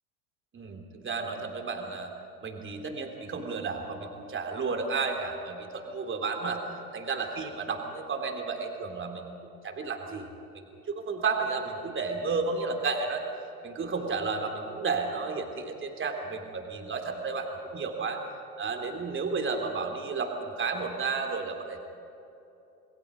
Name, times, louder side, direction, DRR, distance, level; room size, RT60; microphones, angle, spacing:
voice 1, 0.5-2.1 2.4-6.6 6.9-9.3 9.6-10.3 10.5-13.2 13.6-18.2 18.6-21.8, right 4 dB, 25° right, 3 dB, 3.4 m, -32 dB
28.5 x 20.5 x 5.3 m, 3.0 s
hypercardioid pair, 80°, 45 cm